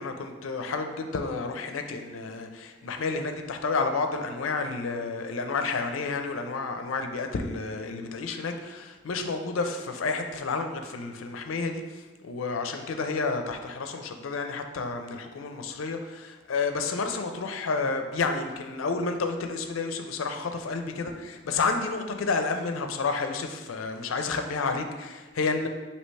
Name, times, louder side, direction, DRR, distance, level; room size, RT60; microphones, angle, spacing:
voice 1, 0.0-25.7, left 4 dB, 90° left, 6 dB, 0.5 m, -30 dB
5.4 x 2.8 x 3.2 m, 1.3 s
head